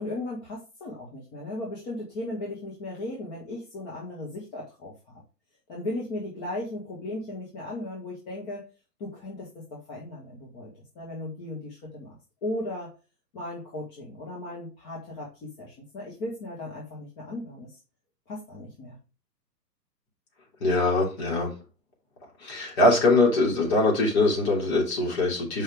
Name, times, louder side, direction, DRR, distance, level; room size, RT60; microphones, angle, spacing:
voice 1, 0.0-5.2 5.7-8.7 9.0-12.9 13.3-17.8 18.3-19.0, left 1 dB, 25° left, -3 dB, 1.6 m, -36 dB
voice 2, 20.6-21.5 22.4-25.6, left 2 dB, 40° left, -1 dB, 3.2 m, -22 dB
6.7 x 5.4 x 3.5 m, 0.32 s
hypercardioid pair, 155°, 50 cm